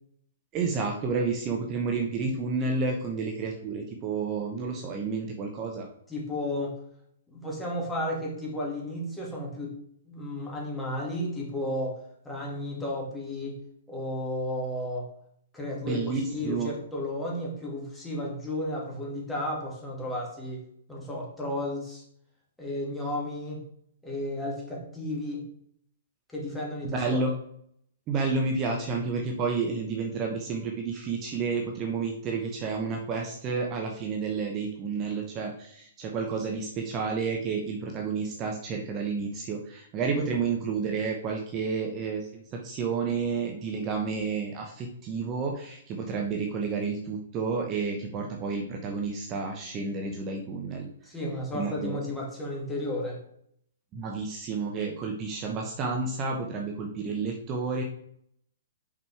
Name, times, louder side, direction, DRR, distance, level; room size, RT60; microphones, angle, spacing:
voice 1, 0.5-5.9 15.8-16.7 26.8-27.3 28.1-50.9 51.5-52.0 53.9-57.8, right 4 dB, 30° right, 2 dB, 0.9 m, -30 dB
voice 2, 6.1-6.8 7.3-9.8 10.1-12.0 12.2-13.5 13.9-15.1 15.5-16.0 16.3-20.6 20.9-22.0 22.6-23.6 24.0-25.5 26.3-27.2 51.0-53.2, left 1 dB, 10° left, -3 dB, 2.2 m, -33 dB
5.4 x 5.2 x 4.7 m, 0.69 s
figure-of-eight pair, 120°, 0 cm